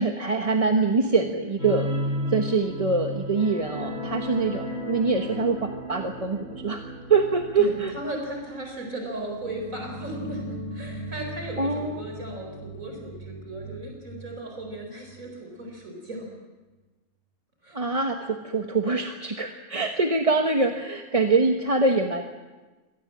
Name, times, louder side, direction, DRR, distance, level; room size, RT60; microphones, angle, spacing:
voice 1, 0.0-6.8 7.1-7.9 11.6-12.0 17.7-22.3, right 3 dB, 25° right, 3 dB, 1.2 m, -24 dB
sound 1, 1.6-14.8 15.1-15.3 15.7-15.8, equal, 75° left, 4.9 m, -35 dB
voice 2, 7.6-10.4 10.7-16.3 17.6-17.8, right 1 dB, 65° right, 1 dB, 5.1 m, -36 dB
25.0 x 18.5 x 7.6 m, 1.2 s
omnidirectional pair, 1.5 m